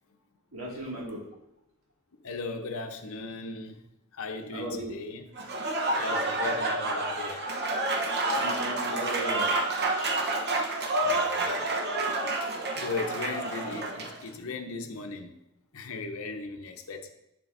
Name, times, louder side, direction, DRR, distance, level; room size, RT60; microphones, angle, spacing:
voice 1, 0.5-1.3 4.5-5.0 8.3-9.5, right 1 dB, 65° right, 2.1 m, -36 dB
voice 2, 2.2-3.8 4.1-5.3 5.9-7.5 9.7-9.8 11.0-12.2 12.7-15.4 15.7-17.1, left 3 dB, 65° left, 0.8 m, -37 dB
Applause / Crowd, 5.4-14.2, right 2 dB, 50° right, 0.9 m, -29 dB
8.0 x 7.5 x 2.6 m
head